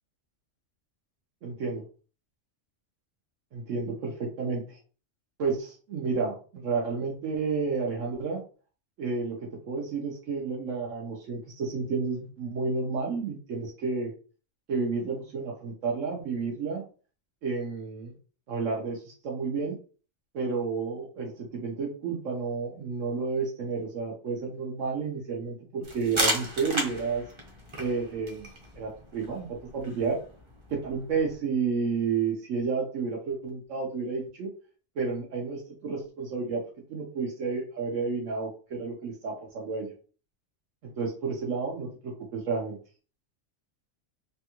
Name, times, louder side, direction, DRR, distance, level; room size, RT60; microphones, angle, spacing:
voice 1, 1.4-1.8 3.5-4.8 5.4-8.4 9.0-14.1 14.7-16.8 17.4-18.1 18.5-19.7 20.3-27.2 27.8-28.5 28.7-29.5 29.7-30.2 30.7-34.5 35.0-36.6 36.9-39.9 41.0-42.8, right 4 dB, 85° right, -1 dB, 1.1 m, -31 dB
sound 1, 25.8-31.4, right 1 dB, 30° right, 0.6 m, -34 dB
3.4 x 2.3 x 2.9 m, 0.38 s
omnidirectional pair, 1.3 m